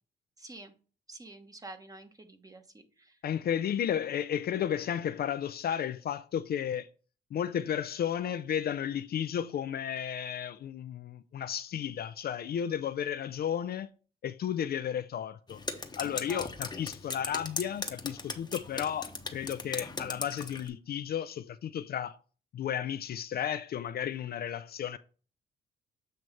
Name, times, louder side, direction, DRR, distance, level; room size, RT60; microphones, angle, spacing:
voice 1, 0.4-0.7 1.1-3.2 16.1-16.5, right 2 dB, 15° right, 1.1 m, -48 dB
voice 2, 3.2-6.9 7.3-13.9 14.2-15.6 16.0-22.2 22.5-25.0, left 9 dB, 50° left, 0.4 m, -33 dB
Drip, 15.5-20.7, left 3 dB, 20° left, 0.9 m, -39 dB
7.8 x 3.1 x 5.4 m
cardioid pair, 90°, 20 cm